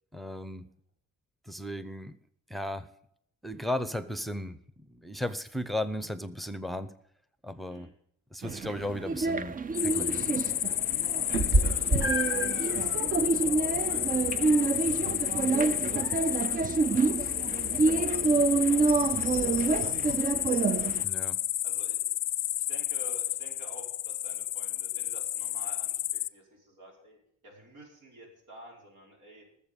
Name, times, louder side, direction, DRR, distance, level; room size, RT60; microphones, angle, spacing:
voice 1, 0.1-0.7 1.5-2.2 2.5-2.9 3.4-4.6 4.9-6.9 7.4-7.9 8.3-10.2 21.0-21.4, left 1 dB, ahead, 12 dB, 0.8 m, -35 dB
sound 1, 8.4-21.0, right 4 dB, 30° right, 0.5 m, -28 dB
sound 2, 9.7-26.3, left 13 dB, 55° left, 0.5 m, -31 dB
Meow, 11.3-21.0, right 1 dB, 45° right, 1.9 m, -34 dB
voice 2, 11.3-13.1 13.7-20.3 20.8-21.1 21.6-22.1 22.6-27.2 27.4-29.5, right 1 dB, 75° right, 0 dB, 5.2 m, -52 dB
19.0 x 7.3 x 5.3 m, 0.70 s
cardioid pair, 120°, 30 cm